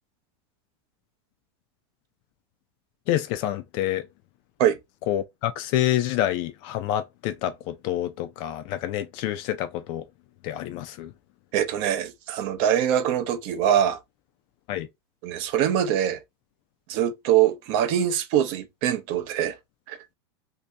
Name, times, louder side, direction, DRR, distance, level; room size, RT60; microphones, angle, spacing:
voice 1, 3.1-4.0 5.1-10.0 10.4-11.1 14.7-14.9, left 12 dB, 35° left, 0.4 m, -27 dB
voice 2, 11.5-14.0 15.2-16.2 16.9-19.6 19.9-20.0, right 10 dB, 40° right, 0.6 m, -23 dB
2.7 x 2.7 x 3.2 m
supercardioid pair, 160°, 14 cm